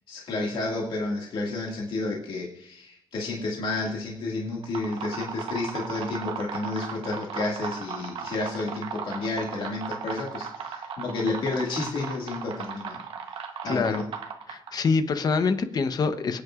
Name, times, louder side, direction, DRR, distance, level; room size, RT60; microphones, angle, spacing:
voice 1, 0.1-13.0 13.3-14.0, left 3 dB, 75° left, -2 dB, 2.1 m, -31 dB
sound 1, 4.5-14.9, right 6 dB, 80° right, 1.0 m, -37 dB
voice 2, 13.7-14.1 14.5-16.4, left 4 dB, 50° left, 9 dB, 0.9 m, -25 dB
27.5 x 9.6 x 2.5 m, 0.68 s
cardioid pair, 125°, 9 cm